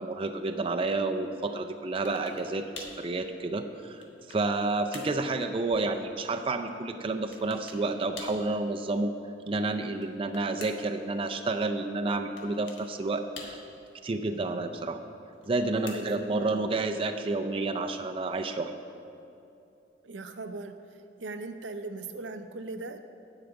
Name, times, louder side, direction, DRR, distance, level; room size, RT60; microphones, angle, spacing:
voice 1, 0.0-9.1 9.5-13.6 14.0-15.0 15.5-18.7, right 3 dB, 30° right, 6 dB, 0.4 m, -30 dB
sound 1, 2.1-2.5 2.8-3.0 3.7-4.5 4.9-5.2 7.3-7.8 8.2-8.5 9.9-11.0 12.4-12.9 13.4-13.9 15.3-16.3, left 3 dB, 85° left, 1.4 m, -46 dB
voice 2, 14.3-14.6 15.9-16.7 20.0-20.7 21.2-23.0, right 3 dB, 85° right, 8 dB, 0.6 m, -39 dB
10.0 x 4.9 x 7.9 m, 2.7 s
head